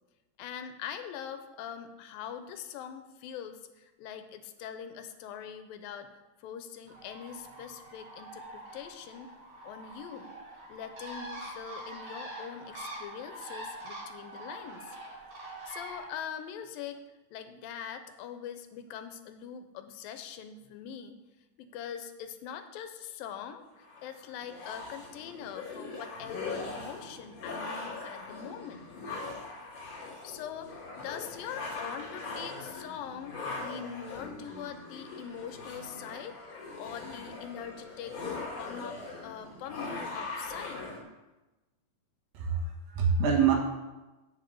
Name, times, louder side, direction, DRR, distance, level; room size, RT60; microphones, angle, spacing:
voice 1, 0.4-6.1 6.4-9.3 9.6-10.3 10.7-15.0 15.4-21.2 21.6-28.9 29.9-38.2 38.6-40.8, left 8 dB, 85° left, 8 dB, 2.5 m, -43 dB
Bird, 6.9-16.1, right 1 dB, 45° right, 2.6 m, -44 dB
sound 1, 23.8-41.0, left 3 dB, 40° left, 3.2 m, -41 dB
voice 2, 42.3-43.6, right 6 dB, 85° right, 0 dB, 3.5 m, -25 dB
7.8 x 7.1 x 7.7 m, 1.1 s
omnidirectional pair, 4.0 m